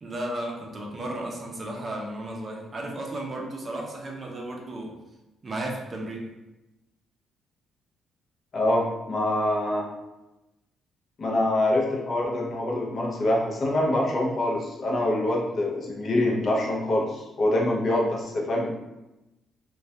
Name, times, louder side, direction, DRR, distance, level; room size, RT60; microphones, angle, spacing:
voice 1, 0.0-4.9 5.4-6.3, right 1 dB, 40° right, 0 dB, 0.5 m, -34 dB
voice 2, 8.5-9.9 11.2-18.7, left 1 dB, 50° left, -2 dB, 0.5 m, -25 dB
2.2 x 2.2 x 2.6 m, 0.99 s
cardioid pair, 90°, 0 cm